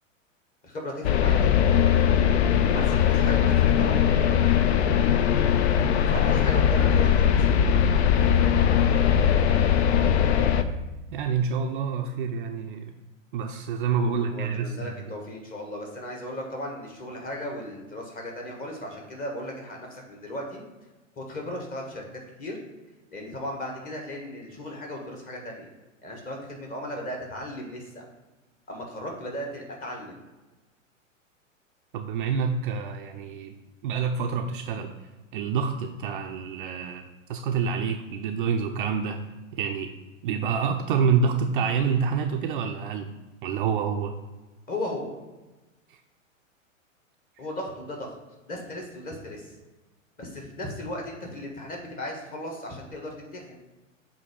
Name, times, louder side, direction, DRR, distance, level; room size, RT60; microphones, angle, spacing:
voice 1, 0.6-1.7 2.5-4.0 6.1-7.5 14.0-20.6 21.2-22.1 22.4-22.6 23.1-25.7 26.0-28.0 28.7-30.2 44.7-45.1 47.4-48.2 48.5-49.5 50.2-53.6, left 1 dB, 20° left, 0 dB, 1.4 m, -36 dB
sound 1, 1.0-10.6, left 8 dB, 55° left, 0.5 m, -20 dB
voice 2, 11.1-12.8 13.3-15.1 31.9-33.6 33.8-34.9 35.3-39.2 39.5-39.9 40.2-43.1 43.4-44.1 45.9-46.0, right 6 dB, 40° right, 4 dB, 0.5 m, -27 dB
7.8 x 2.7 x 5.0 m, 1.1 s
figure-of-eight pair, 100°, 40 cm